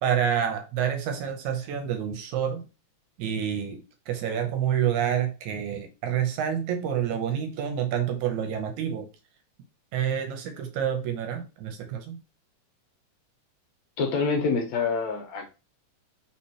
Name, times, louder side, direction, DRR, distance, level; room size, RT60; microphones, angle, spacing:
voice 1, 0.0-2.7 3.2-9.1 9.9-12.2, right 9 dB, 75° right, 2.0 m, -28 dB
voice 2, 14.0-15.5, left 4 dB, 70° left, 2.1 m, -26 dB
4.3 x 4.3 x 2.8 m
omnidirectional pair, 3.7 m